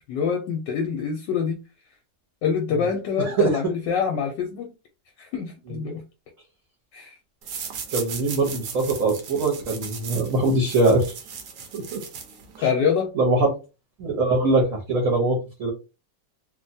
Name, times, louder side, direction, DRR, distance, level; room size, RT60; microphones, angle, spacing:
voice 1, 0.0-1.6 2.4-4.7 5.2-6.0 6.9-7.2 12.6-13.1, left 6 dB, 75° left, 1.2 m, -25 dB
voice 2, 3.2-3.6 5.7-5.8 7.9-11.0 11.7-12.0 12.6-12.7 13.1-13.5 14.0-15.7, right 2 dB, 55° right, 1.1 m, -22 dB
sound 1, 7.4-12.7, right 6 dB, 75° right, 1.3 m, -37 dB
3.2 x 2.1 x 2.6 m
omnidirectional pair, 2.0 m